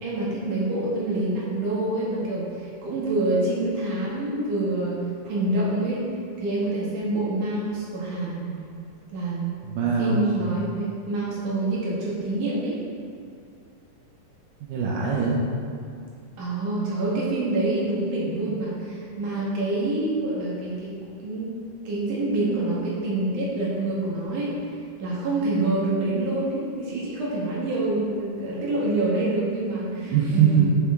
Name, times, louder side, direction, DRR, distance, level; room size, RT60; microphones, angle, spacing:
voice 1, 0.0-6.0 6.4-8.5 9.1-9.6 10.0-12.8 16.4-20.9 21.2-21.5 21.8-24.5 25.0-30.6, right 2 dB, 55° right, -7 dB, 3.3 m, -26 dB
voice 2, 9.6-10.5 14.6-15.4 30.0-30.6, right 7 dB, 70° right, -5 dB, 2.1 m, -22 dB
10.5 x 7.1 x 3.7 m, 2.3 s
omnidirectional pair, 4.7 m